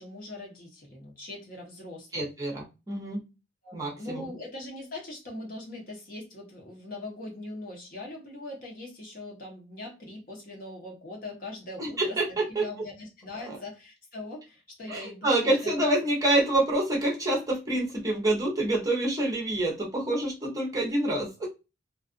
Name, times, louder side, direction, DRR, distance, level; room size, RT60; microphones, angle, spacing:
voice 1, 0.0-2.3 3.6-15.8, left 2 dB, 50° left, -1 dB, 1.1 m, -41 dB
voice 2, 2.1-3.2 3.7-4.3 11.8-12.7 14.9-21.5, right 1 dB, 20° right, -2 dB, 0.8 m, -27 dB
2.5 x 2.4 x 2.4 m, 0.27 s
head